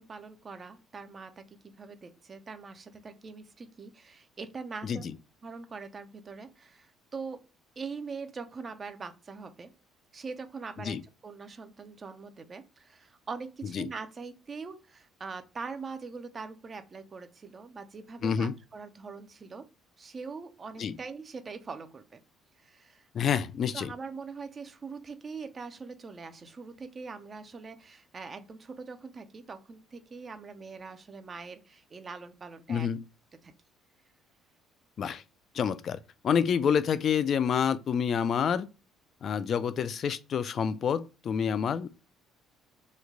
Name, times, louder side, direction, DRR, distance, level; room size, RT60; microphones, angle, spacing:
voice 1, 0.0-5.1 5.4-7.4 7.8-9.7 10.1-19.7 20.0-22.2 22.6-23.4 23.7-32.9 33.4-33.5, right 4 dB, 30° right, 0.4 m, -42 dB
voice 2, 4.8-5.1 10.8-11.0 13.6-13.9 18.2-18.5 20.8-21.0 23.1-23.9 32.7-33.0 35.0-35.2 35.5-38.7 39.2-41.9, left 7 dB, 50° left, 0.3 m, -28 dB
3.1 x 2.2 x 3.6 m
cardioid pair, 110°, 0 cm